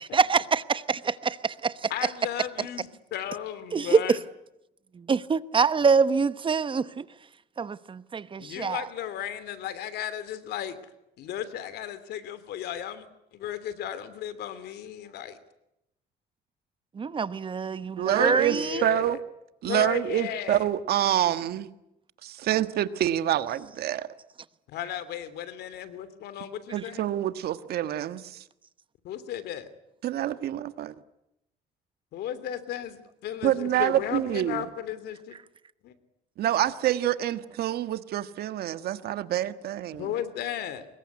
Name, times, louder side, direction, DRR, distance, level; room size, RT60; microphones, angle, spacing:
voice 1, 0.0-0.6 3.7-4.0 5.0-7.1 7.6-8.8 17.0-18.8, right 5 dB, 30° right, 1.0 m, -25 dB
voice 2, 1.9-4.2 8.4-10.8 11.2-13.0 13.3-15.4 18.1-19.2 19.6-20.7 24.7-27.1 29.0-29.7 32.1-35.3 35.8-36.0 40.0-40.9, left 10 dB, 75° left, 3.0 m, -35 dB
voice 3, 17.9-19.2 19.6-21.7 22.2-24.1 26.7-28.4 30.0-30.9 33.4-34.7 36.4-40.0, right 12 dB, 70° right, 1.5 m, -27 dB
25.0 x 21.5 x 9.7 m
cardioid pair, 110°, 17 cm